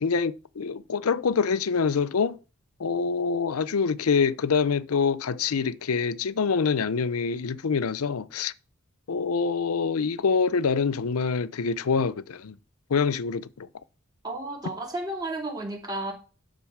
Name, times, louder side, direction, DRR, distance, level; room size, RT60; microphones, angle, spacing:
voice 1, 0.0-2.4 2.8-8.5 9.1-12.6 12.9-13.7, left 5 dB, 80° left, 0.6 m, -25 dB
voice 2, 14.2-16.1, right 2 dB, 20° right, 3.1 m, -32 dB
12.0 x 4.0 x 7.3 m
head